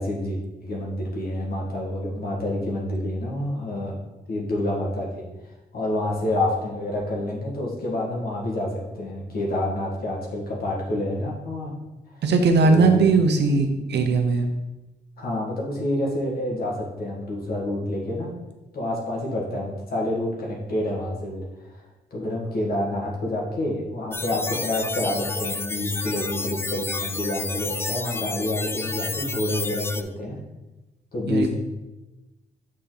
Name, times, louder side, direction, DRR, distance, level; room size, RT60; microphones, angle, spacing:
voice 1, 0.0-3.9 4.3-5.2 5.7-11.7 12.6-13.0 15.2-18.3 18.7-21.4 21.7-21.8 22.1-30.4 31.1-31.6, left 1 dB, 60° left, -3 dB, 1.7 m, -28 dB
voice 2, 12.2-14.5 31.3-31.5, right 4 dB, 80° right, 5 dB, 0.9 m, -19 dB
sound 1, 24.1-30.0, left 3 dB, 15° left, 0.3 m, -30 dB
6.7 x 4.2 x 3.9 m, 1.0 s
cardioid pair, 105°, 17 cm